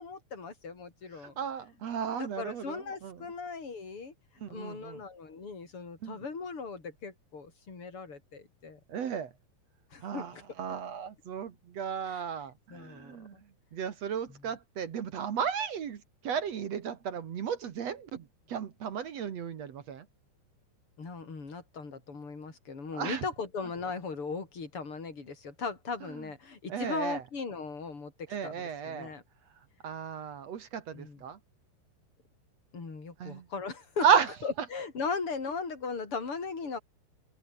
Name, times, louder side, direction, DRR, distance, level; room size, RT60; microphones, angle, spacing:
voice 1, 0.0-1.3 2.2-4.1 4.5-8.8 9.9-10.4 12.1-12.3 12.7-13.4 14.3-14.4 21.0-29.2 30.9-31.2 32.7-34.1 34.4-36.8, left 4 dB, 30° left, 5.7 m, -38 dB
voice 2, 1.2-3.2 4.4-5.0 6.0-6.2 8.9-9.3 10.0-10.3 10.6-13.4 13.7-20.0 22.9-23.2 26.7-27.2 28.3-29.1 29.8-31.4 33.2-33.5 34.0-34.3, right 7 dB, 60° right, 1.8 m, -33 dB
omnidirectional pair, 5.4 m